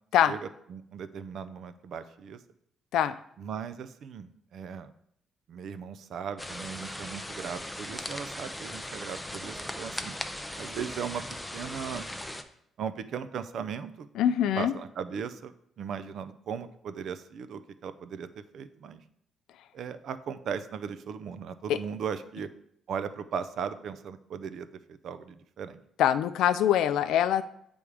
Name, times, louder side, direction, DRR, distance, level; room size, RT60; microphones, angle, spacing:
voice 1, 0.7-2.4 3.4-4.9 5.5-10.2 10.6-11.2 11.5-12.1 12.8-14.1 14.6-15.5 15.8-19.0 19.7-22.5 22.9-24.7 25.0-25.8, right 7 dB, 55° right, 12 dB, 0.5 m, -37 dB
sound 1, 6.4-12.4, left 1 dB, 5° left, 0.4 m, -38 dB
voice 2, 14.1-14.8 21.7-21.8 26.0-27.4, left 10 dB, 80° left, 13 dB, 0.4 m, -24 dB
8.5 x 3.5 x 4.8 m, 0.71 s
cardioid pair, 160°, 0 cm